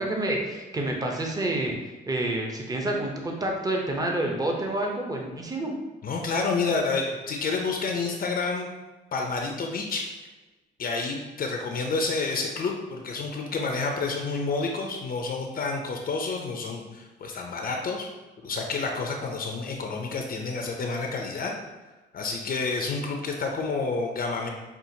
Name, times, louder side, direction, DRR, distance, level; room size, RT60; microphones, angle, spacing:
voice 1, 0.0-1.7 2.1-5.7, right 1 dB, 20° right, 1 dB, 0.7 m, -28 dB
voice 2, 6.0-8.7 9.1-10.1 10.8-18.1 18.4-21.5 22.1-24.5, left 4 dB, 50° left, 2 dB, 0.5 m, -29 dB
5.6 x 2.4 x 2.7 m, 1.2 s
cardioid pair, 90°, 20 cm